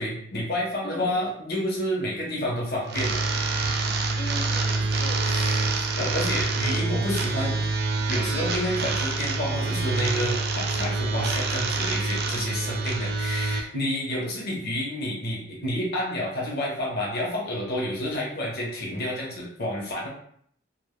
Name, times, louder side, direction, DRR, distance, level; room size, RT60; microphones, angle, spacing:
voice 1, 0.0-3.2 5.2-7.7 8.1-20.1, left 1 dB, 55° left, -3 dB, 0.7 m, -30 dB
voice 2, 0.8-1.2 4.2-5.3 14.1-14.4, left 1 dB, 25° left, 4 dB, 0.3 m, -39 dB
sound 1, 2.9-13.6, right 3 dB, 55° right, 0.4 m, -26 dB
2.3 x 2.0 x 3.0 m, 0.64 s
head